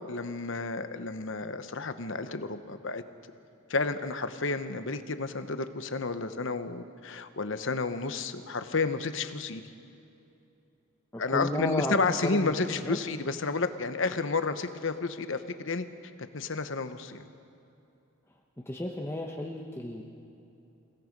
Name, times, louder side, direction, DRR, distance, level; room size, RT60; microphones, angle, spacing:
voice 1, 0.1-3.0 3.7-9.6 11.2-15.9 16.3-17.2, left 3 dB, 65° left, 10 dB, 1.0 m, -31 dB
voice 2, 11.1-12.0 12.2-12.5 12.8-13.0 18.7-20.0, left 1 dB, 10° left, 0 dB, 1.1 m, -33 dB
29.0 x 17.5 x 5.3 m, 2.7 s
head